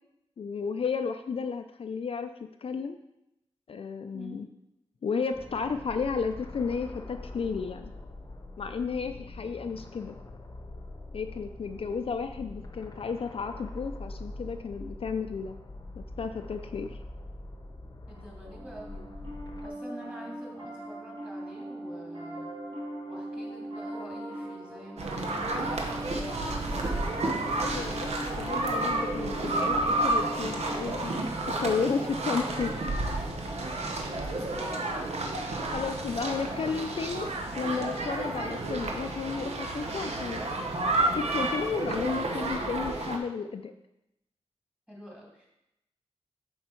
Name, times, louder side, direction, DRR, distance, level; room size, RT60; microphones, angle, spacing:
voice 1, 0.4-2.3 2.6-3.0 3.7-4.5 5.0-7.9 8.6-10.2 11.1-15.6 16.0-17.0 27.6-28.1 28.4-31.1 31.6-32.9 35.7-37.3 37.6-40.4 40.8-43.7, left 5 dB, 60° left, 7 dB, 0.4 m, -33 dB
voice 2, 4.1-4.4 18.1-19.0 19.6-22.5 23.1-27.6 33.6-35.1 44.9-45.4, equal, 10° right, -3 dB, 2.4 m, -47 dB
sound 1, 5.3-19.7, left 2 dB, 35° left, 0.8 m, -44 dB
Piano, 18.4-30.9, right 1 dB, 55° right, 2.5 m, -40 dB
sound 2, 25.0-43.2, right 2 dB, 75° right, 1.0 m, -31 dB
7.5 x 4.6 x 4.5 m, 0.87 s
wide cardioid pair, 90°, 11 cm